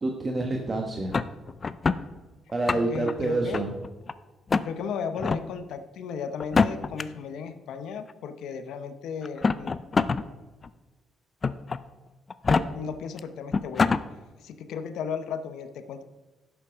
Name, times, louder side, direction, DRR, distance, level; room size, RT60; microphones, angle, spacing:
voice 1, 0.0-1.2 2.5-3.7 12.5-12.6, right 2 dB, 30° right, 2 dB, 1.2 m, -28 dB
sound 1, 1.1-2.0 2.5-3.1 3.5-4.1 4.5-4.7 5.2-5.4 6.4-7.0 8.1-8.2 9.2-10.2 10.6-10.7 11.4-11.8 12.3-12.6 13.2-13.3 13.5-14.0, left 4 dB, 35° left, 0.5 m, -24 dB
voice 2, 2.7-3.6 4.6-9.8 12.7-13.9 14.4-16.0, left 6 dB, 80° left, 10 dB, 0.8 m, -35 dB
11.0 x 7.2 x 5.0 m, 1.2 s
cardioid pair, 90°, 0 cm